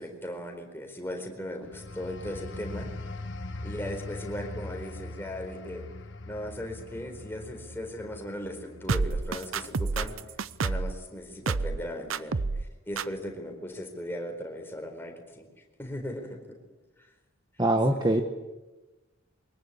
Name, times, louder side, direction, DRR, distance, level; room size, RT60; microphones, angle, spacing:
voice 1, 0.0-2.9 3.6-5.9 6.3-10.2 10.6-12.4 12.9-15.5 15.8-16.6 17.9-18.2, left 1 dB, 10° left, 3 dB, 4.3 m, -38 dB
sound 1, 1.6-12.0 12.4-12.7, left 2 dB, 60° left, 1.5 m, -42 dB
sound 2, 8.9-11.0 11.5-11.8 12.1-12.7 13.0-13.1, right 4 dB, 80° right, 0.7 m, -29 dB
voice 2, 17.6-18.2, right 1 dB, 20° right, 5 dB, 1.2 m, -23 dB
23.5 x 21.0 x 8.7 m, 1.1 s
head